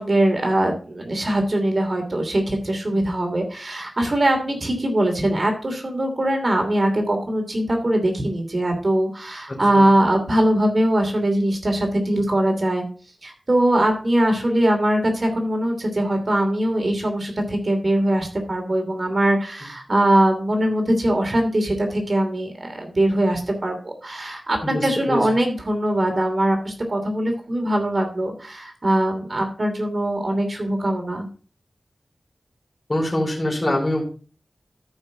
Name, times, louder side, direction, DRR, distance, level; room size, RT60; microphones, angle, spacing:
voice 1, 0.0-12.8 13.2-31.2, right 1 dB, 45° right, 3 dB, 2.8 m, -21 dB
voice 2, 9.5-9.9 24.6-25.2 32.9-34.0, left 1 dB, 30° left, -2 dB, 4.4 m, -24 dB
13.5 x 5.6 x 3.9 m, 0.38 s
wide cardioid pair, 70°, 0 cm